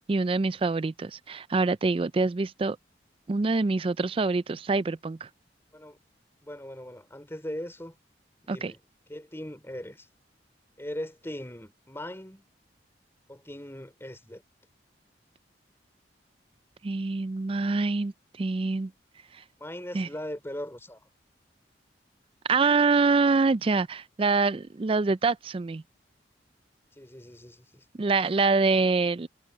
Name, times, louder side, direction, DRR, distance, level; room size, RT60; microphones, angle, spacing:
voice 1, 0.0-2.8 3.3-5.3 8.5-8.7 16.8-18.1 18.4-18.9 19.9-20.1 22.5-25.8 27.9-29.3, right 4 dB, 30° right, 0.4 m, -25 dB
voice 2, 6.4-8.0 8.4-8.8 9.1-10.1 10.8-12.4 13.3-14.4 19.6-21.0 27.0-27.8, left 1 dB, 15° left, 4.5 m, -39 dB
head